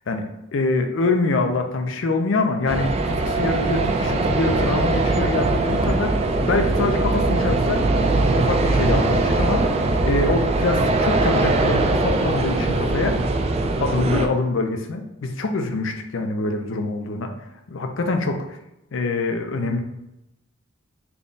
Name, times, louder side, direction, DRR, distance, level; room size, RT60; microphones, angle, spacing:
voice 1, 0.1-7.8 8.3-9.7 10.0-13.2 13.8-17.3 17.7-18.6 18.9-19.8, left 3 dB, 70° left, 5 dB, 0.5 m, -25 dB
sound 1, 2.7-14.3, right 2 dB, 30° right, 0.3 m, -21 dB
3.5 x 2.2 x 3.9 m, 0.89 s
head